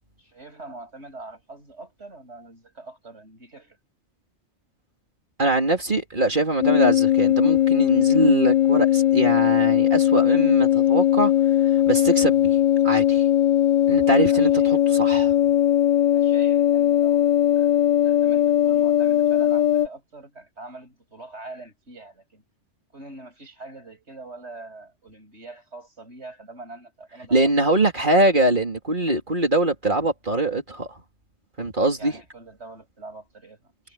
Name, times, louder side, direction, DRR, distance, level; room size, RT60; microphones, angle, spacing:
voice 1, 0.2-3.8 14.2-14.9 16.1-22.4 22.9-27.7 32.0-33.9, right 2 dB, 70° right, 7.7 m, -43 dB
voice 2, 5.4-11.3 11.9-13.3 13.9-15.3 27.3-30.9 31.6-32.1, right 2 dB, 45° right, 3.2 m, -22 dB
sound 1, 6.6-19.9, left 11 dB, 55° left, 0.5 m, -19 dB
omnidirectional pair, 1.2 m